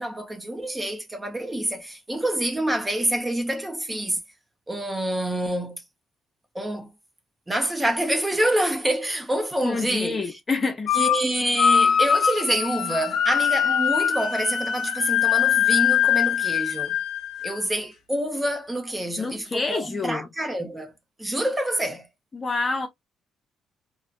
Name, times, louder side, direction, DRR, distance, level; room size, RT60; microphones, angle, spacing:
voice 1, 0.0-4.2 4.7-5.8 6.5-6.9 7.5-10.2 10.9-17.0 17.4-20.9 21.2-22.1, right 1 dB, 15° right, 0.8 m, -27 dB
voice 2, 9.6-10.9 19.2-20.3 22.3-22.9, left 3 dB, 30° left, 0.7 m, -27 dB
sound 1, 10.9-11.2 11.6-17.6, left 8 dB, 75° left, 0.5 m, -22 dB
3.1 x 2.2 x 2.4 m
cardioid pair, 90°, 0 cm